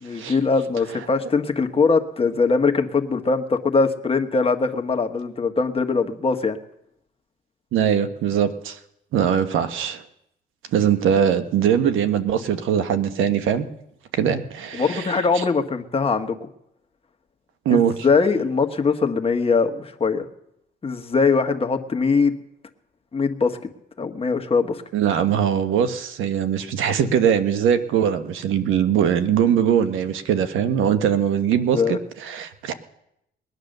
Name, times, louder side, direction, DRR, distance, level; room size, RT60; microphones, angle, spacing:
voice 1, 0.0-6.6 14.7-16.5 17.7-20.2 20.8-22.4 23.1-23.6 24.0-24.8 31.7-32.0, left 4 dB, 30° left, 6 dB, 1.5 m, -21 dB
voice 2, 7.7-8.8 9.1-10.0 10.7-13.7 14.1-15.4 17.6-17.9 24.9-32.7, right 8 dB, 85° right, 9 dB, 1.2 m, -21 dB
20.5 x 9.5 x 6.7 m, 0.81 s
cardioid pair, 90°, 20 cm